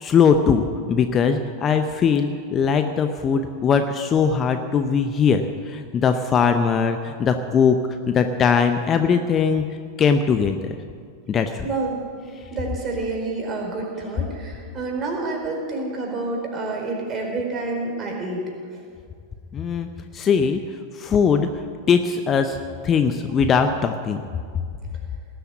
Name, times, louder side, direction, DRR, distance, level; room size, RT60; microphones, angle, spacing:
voice 1, 0.0-7.8 8.1-9.6 10.0-10.7 11.3-11.6 19.5-19.9 20.1-20.6 20.9-21.5 21.9-22.6 22.8-24.2, left 6 dB, 25° left, 7 dB, 0.8 m, -20 dB
voice 2, 11.6-12.0 12.5-18.8, right 3 dB, 25° right, 0 dB, 4.5 m, -28 dB
19.0 x 8.0 x 9.5 m, 2.1 s
figure-of-eight pair, 90°, 0 cm